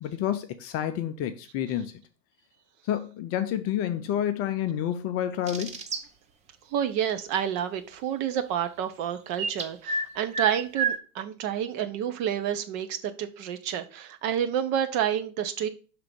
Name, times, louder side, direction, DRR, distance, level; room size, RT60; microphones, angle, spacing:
voice 1, 0.0-2.0 2.8-5.8, left 10 dB, 30° left, 0.6 m, -29 dB
sound 1, 5.5-6.0 9.4-10.1 10.3-11.0, right 4 dB, 15° right, 0.5 m, -28 dB
voice 2, 6.7-15.7, right 9 dB, 40° right, 0.9 m, -29 dB
5.9 x 3.7 x 5.2 m
hypercardioid pair, 95°, 48 cm